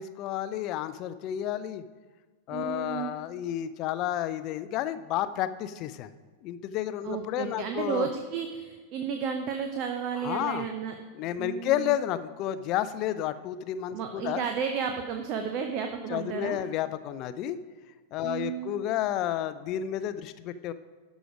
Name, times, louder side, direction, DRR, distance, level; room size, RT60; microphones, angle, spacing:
voice 1, 0.0-1.8 2.5-6.1 6.4-8.1 10.2-10.7 11.1-14.4 16.1-17.6 18.1-20.7, left 12 dB, 40° left, 13 dB, 0.4 m, -31 dB
voice 2, 2.5-3.2 7.0-11.0 11.4-11.9 13.9-16.6 18.2-18.8, right 7 dB, 40° right, 5 dB, 0.7 m, -32 dB
12.5 x 5.0 x 5.0 m, 1.4 s
figure-of-eight pair, 90°, 0 cm